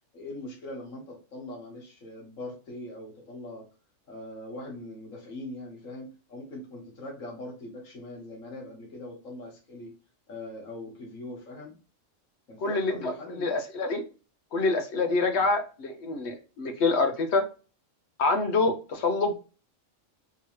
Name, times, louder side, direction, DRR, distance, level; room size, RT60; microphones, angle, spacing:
voice 1, 0.1-3.6 4.1-9.9 10.3-11.7 12.5-13.5 15.3-15.5, left 1 dB, 85° left, -1 dB, 1.8 m, -41 dB
voice 2, 12.6-14.0 14.5-17.5 18.2-19.3, left 3 dB, 65° left, 6 dB, 0.9 m, -26 dB
3.9 x 2.8 x 2.9 m, 0.35 s
omnidirectional pair, 1.3 m